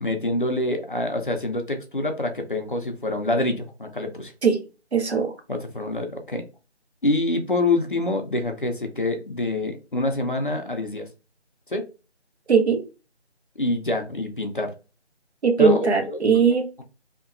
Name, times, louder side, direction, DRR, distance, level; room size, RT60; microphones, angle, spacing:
voice 1, 0.0-4.3 5.5-6.4 7.0-11.1 11.7-11.9 13.6-14.7 15.6-16.4, left 2 dB, 50° left, 5 dB, 0.5 m, -26 dB
voice 2, 4.9-5.3 12.5-12.8 15.4-16.8, right 5 dB, 70° right, 5 dB, 0.8 m, -20 dB
2.8 x 2.2 x 2.4 m, 0.32 s
figure-of-eight pair, 170°, 34 cm